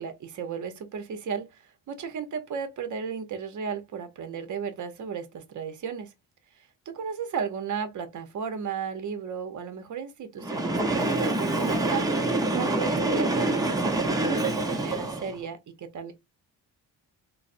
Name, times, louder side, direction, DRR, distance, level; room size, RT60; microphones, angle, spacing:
voice 1, 0.0-6.1 6.6-16.1, right 6 dB, 50° right, 0.7 m, -35 dB
Train, 10.4-15.4, right 2 dB, 10° right, 0.5 m, -26 dB
3.9 x 2.0 x 2.5 m
wide cardioid pair, 160°, 39 cm